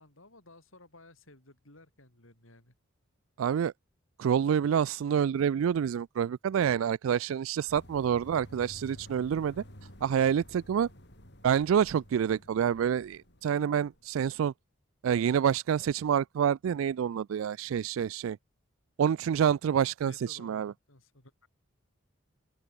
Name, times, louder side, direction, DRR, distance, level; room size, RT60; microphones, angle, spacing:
voice 1, 0.0-2.7 20.0-21.5, left 2 dB, 75° left, 6.1 m, -56 dB
voice 2, 3.4-3.7 4.2-9.6 10.0-10.9 11.4-14.5 15.0-18.4 19.0-20.7, right 8 dB, 75° right, 0.3 m, -27 dB
sound 1, 7.7-14.4, equal, 55° left, 7.4 m, -52 dB
open air
head